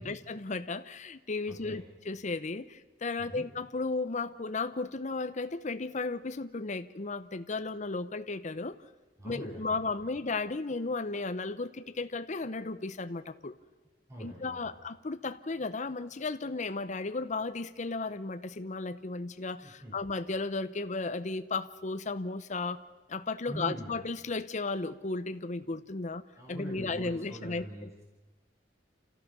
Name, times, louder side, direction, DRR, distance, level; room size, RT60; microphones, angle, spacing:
voice 1, 0.0-8.8 9.2-13.5 14.2-22.8 23.1-27.6, left 3 dB, 45° left, 10 dB, 0.8 m, -35 dB
voice 2, 1.5-1.9 3.2-3.5 9.2-10.1 14.1-14.7 19.6-20.0 23.5-23.9 26.4-28.0, right 1 dB, 15° right, -2 dB, 5.3 m, -43 dB
30.0 x 14.5 x 6.8 m, 1.3 s
head